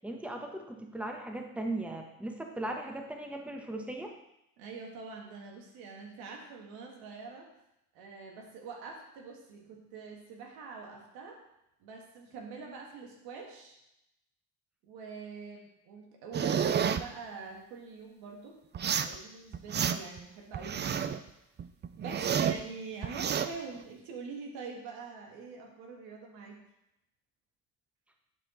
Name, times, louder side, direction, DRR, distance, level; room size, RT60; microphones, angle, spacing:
voice 1, 0.0-4.1, right 1 dB, 5° right, 3 dB, 1.1 m, -38 dB
voice 2, 4.6-7.5 7.9-11.4 11.8-13.8 14.8-18.5 19.0-21.1 22.0-26.6, right 4 dB, 85° right, 1 dB, 1.6 m, -45 dB
sound 1, 16.3-17.0 18.7-19.2 19.5-20.2 20.5-21.2 21.6-22.6 23.0-23.5, right 8 dB, 30° right, 0.4 m, -30 dB
10.5 x 4.5 x 3.8 m, 0.85 s
supercardioid pair, 80°, 36 cm